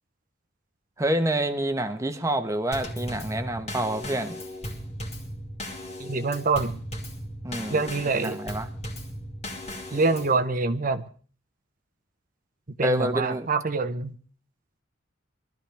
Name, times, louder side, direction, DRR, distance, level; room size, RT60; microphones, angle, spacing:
voice 1, 1.0-4.4 7.4-7.8 8.2-8.7 12.8-13.5, right 1 dB, 15° right, 8 dB, 1.2 m, -27 dB
Drum kit / Snare drum / Bass drum, 2.7-10.4, equal, 35° left, 2.5 m, -37 dB
voice 2, 6.0-6.8 7.7-8.4 9.9-11.0 12.8-14.1, right 3 dB, 40° right, 10 dB, 0.8 m, -25 dB
23.0 x 13.0 x 3.5 m, 0.42 s
head